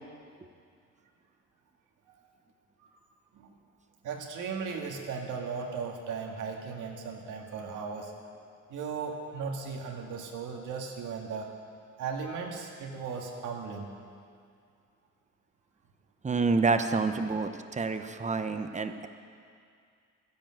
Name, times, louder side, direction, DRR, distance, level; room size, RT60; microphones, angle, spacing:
voice 1, 4.0-8.1 8.7-11.5 12.0-13.9, right 5 dB, 85° right, 1 dB, 1.9 m, -37 dB
voice 2, 16.2-19.1, right 4 dB, 25° right, 8 dB, 0.9 m, -28 dB
12.0 x 10.5 x 7.6 m, 2.3 s
cardioid pair, 90°, 30 cm